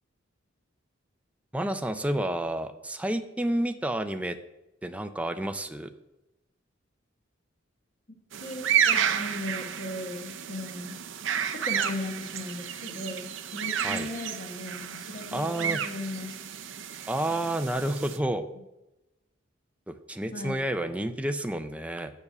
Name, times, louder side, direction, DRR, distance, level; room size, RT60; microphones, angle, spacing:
voice 1, 1.5-4.4 4.8-5.9 13.8-14.1 15.3-15.8 17.1-18.4 19.9-22.1, right 1 dB, 5° right, 7 dB, 0.5 m, -30 dB
sound 1, 8.3-18.2, right 8 dB, 70° right, 0.7 m, -31 dB
voice 2, 8.4-11.0 11.5-16.3 20.3-20.6, left 1 dB, 45° left, 3 dB, 1.4 m, -37 dB
7.2 x 6.8 x 6.8 m, 0.94 s
head